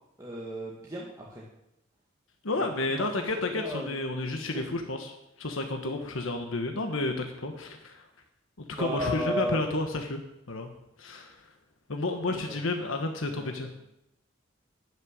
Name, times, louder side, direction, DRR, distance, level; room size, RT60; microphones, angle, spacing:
voice 1, 0.2-1.4 2.6-3.1 3.5-4.0 4.5-4.6 8.7-9.6 12.3-12.6 13.3-13.7, equal, 15° right, -4 dB, 1.8 m, -35 dB
voice 2, 2.4-8.0 8.6-10.2 10.5-10.7 11.0-11.4 11.9-13.7, left 2 dB, 75° left, 5 dB, 1.3 m, -31 dB
12.0 x 6.6 x 9.8 m, 0.85 s
head